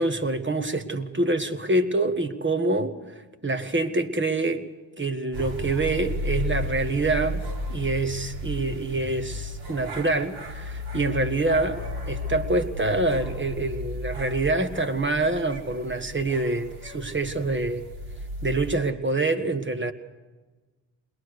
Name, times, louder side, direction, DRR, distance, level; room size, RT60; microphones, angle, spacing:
voice 1, 0.0-2.9 3.4-4.7 5.0-7.4 7.7-17.8 18.4-19.9, right 2 dB, 25° right, 8 dB, 1.5 m, -26 dB
sound 1, 5.3-18.8, left 1 dB, 75° right, 3.6 m, -34 dB
22.0 x 19.0 x 6.5 m, 1.3 s
supercardioid pair, 60°, 48 cm